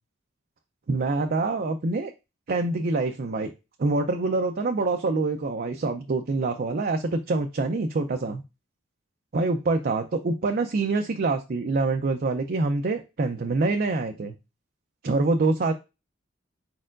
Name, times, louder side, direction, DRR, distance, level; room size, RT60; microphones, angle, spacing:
voice 1, 0.9-2.1 2.5-3.5 3.8-8.4 9.3-14.3 15.0-15.7, right 3 dB, 45° right, 5 dB, 0.5 m, -25 dB
4.8 x 4.4 x 2.5 m, 0.26 s
head